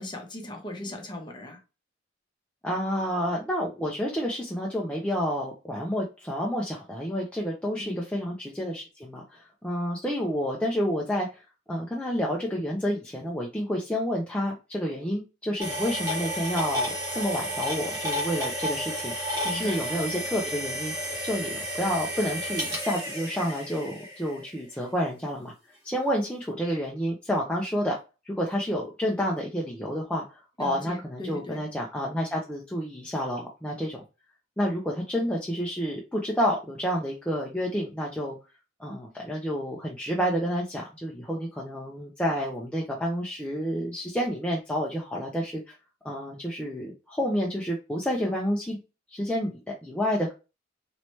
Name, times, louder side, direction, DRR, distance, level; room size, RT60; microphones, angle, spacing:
voice 1, 0.0-1.6 7.8-8.1 19.4-19.8 30.6-31.6, left 2 dB, 25° left, 0.8 m, -38 dB
voice 2, 2.6-11.4 11.7-19.1 19.5-20.9 21.2-25.5 25.8-28.0 28.3-34.0 34.6-38.4 38.8-45.7 46.0-48.8 49.1-50.3, equal, 5° left, 0.5 m, -29 dB
sound 1, 15.6-24.5, equal, 20° right, 1.2 m, -32 dB
3.1 x 2.9 x 3.0 m
head